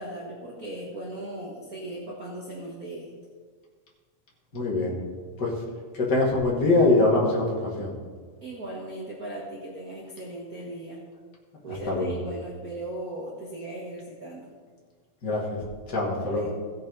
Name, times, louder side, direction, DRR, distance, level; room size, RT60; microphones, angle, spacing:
voice 1, 0.0-3.1 8.4-11.0 11.6-14.5 16.2-16.5, right 1 dB, 85° right, -5 dB, 0.8 m, -38 dB
voice 2, 4.5-5.0 5.4-5.5 6.0-8.0 11.9-12.1 15.2-15.6 15.9-16.5, left 2 dB, 35° left, -3 dB, 2.1 m, -23 dB
16.0 x 6.6 x 3.9 m, 1.5 s
omnidirectional pair, 3.9 m